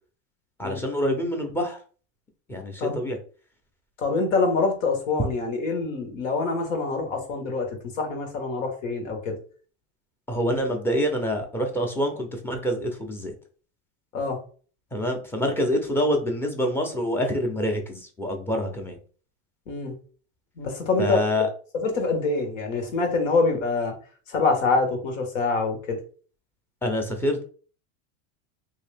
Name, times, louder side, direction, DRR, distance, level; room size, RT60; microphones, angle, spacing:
voice 1, 0.6-1.8 2.5-3.2 10.3-13.3 14.9-19.0 21.0-21.5 26.8-27.4, equal, 5° left, 2 dB, 0.5 m, -26 dB
voice 2, 4.0-7.7 8.0-9.3 14.1-14.4 19.7-19.9 20.6-21.2 21.7-23.9 24.3-26.0, left 3 dB, 90° left, 4 dB, 1.4 m, -25 dB
3.2 x 2.7 x 3.4 m, 0.41 s
supercardioid pair, 145°, 37 cm